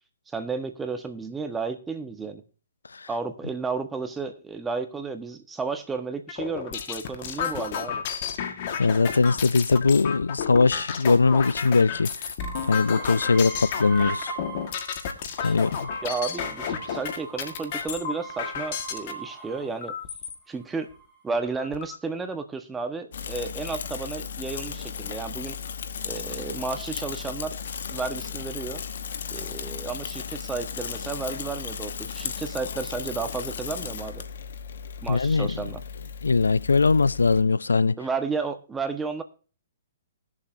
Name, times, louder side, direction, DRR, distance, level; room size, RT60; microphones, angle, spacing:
voice 1, 0.3-2.4 3.1-8.0 15.4-15.6 16.0-19.9 20.5-20.9 21.2-25.6 26.0-27.6 27.9-28.8 29.3-34.2 35.0-35.8 38.0-39.2, right 4 dB, 10° right, 1.2 m, -32 dB
sound 1, 6.3-19.1 19.8-20.3 20.9-21.0 21.3-21.9, left 7 dB, 50° left, 1.5 m, -32 dB
voice 2, 8.8-12.3 12.7-14.3 15.4-15.9 35.1-35.6 36.2-38.0, left 4 dB, 85° left, 0.4 m, -21 dB
sound 2, 12.4-14.9 15.3-19.9 20.6-21.2, right 4 dB, 10° left, 2.9 m, -40 dB
Bicycle / Mechanisms, 23.1-37.4, left 7 dB, 65° left, 1.0 m, -35 dB
20.5 x 7.3 x 2.6 m
hypercardioid pair, 130°, 0 cm